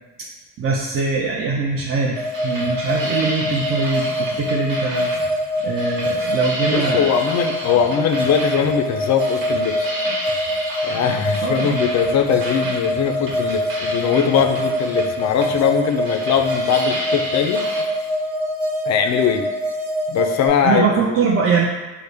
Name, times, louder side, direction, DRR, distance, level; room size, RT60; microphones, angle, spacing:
voice 1, 0.6-5.1 5.6-7.0 11.4-11.8 20.6-21.7, right 4 dB, 30° right, -3 dB, 0.5 m, -22 dB
sound 1, 1.7-17.8, right 1 dB, 50° right, 1.2 m, -32 dB
sound 2, 2.2-20.5, left 1 dB, 85° right, 0.7 m, -24 dB
voice 2, 6.7-9.9 10.8-17.6 18.9-19.5 20.1-21.0, left 7 dB, 40° left, 6 dB, 0.4 m, -20 dB
3.7 x 2.1 x 3.3 m, 1.2 s
hypercardioid pair, 65°, 44 cm